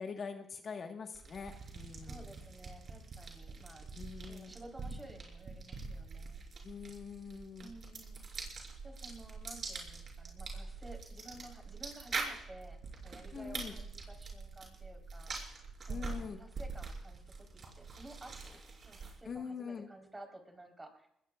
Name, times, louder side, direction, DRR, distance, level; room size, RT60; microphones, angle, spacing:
voice 1, 0.0-2.3 3.9-4.5 6.6-7.7 13.3-13.7 15.9-16.4 19.3-19.9, left 5 dB, 50° left, 4 dB, 1.5 m, -44 dB
sound 1, 1.1-19.3, right 4 dB, 50° right, 5.3 m, -44 dB
voice 2, 2.0-6.4 7.6-8.2 8.8-15.4 15.8-21.1, right 1 dB, 15° right, 3 dB, 3.9 m, -53 dB
22.5 x 20.0 x 2.4 m, 0.77 s
cardioid pair, 90°, 0 cm